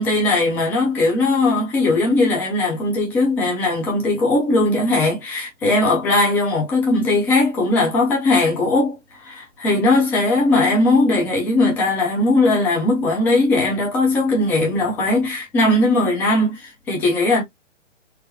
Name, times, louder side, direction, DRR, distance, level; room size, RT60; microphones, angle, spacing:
voice 1, 0.0-9.0 9.2-17.4, left 2 dB, 5° left, 0.5 m, -19 dB
3.9 x 2.1 x 2.7 m
figure-of-eight pair, 130°, 37 cm